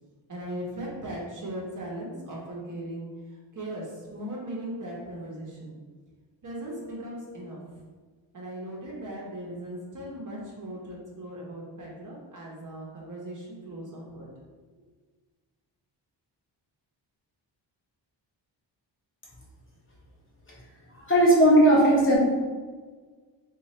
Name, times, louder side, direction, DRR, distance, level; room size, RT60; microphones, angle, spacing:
voice 1, 0.3-5.8 6.4-7.6 8.3-14.3, right 1 dB, 40° right, -3 dB, 0.8 m, -38 dB
voice 2, 20.9-22.2, right 1 dB, 25° left, -6 dB, 0.8 m, -18 dB
2.9 x 2.3 x 4.1 m, 1.4 s
wide cardioid pair, 170°, 46 cm